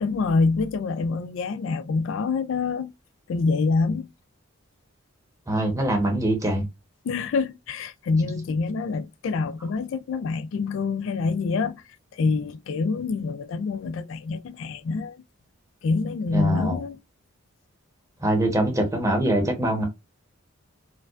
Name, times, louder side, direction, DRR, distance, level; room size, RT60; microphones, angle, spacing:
voice 1, 0.0-2.9 3.3-4.1 7.0-11.8 12.1-15.2 15.8-17.0, left 4 dB, 65° left, 0.3 m, -26 dB
voice 2, 5.5-6.6 16.3-16.8 18.2-19.9, right 1 dB, 15° right, 0.9 m, -23 dB
4.5 x 2.3 x 2.4 m
head